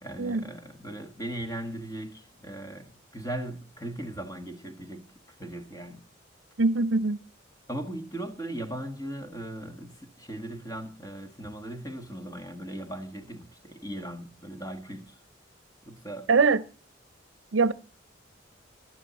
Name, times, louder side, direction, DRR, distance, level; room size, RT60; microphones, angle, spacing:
voice 1, 0.0-5.1 5.4-6.1 7.7-15.2 15.8-16.3, right 1 dB, 20° left, 1.5 m, -38 dB
voice 2, 6.6-7.2 16.3-16.6 17.5-17.7, right 4 dB, 80° right, 0.6 m, -22 dB
15.5 x 12.0 x 4.1 m
head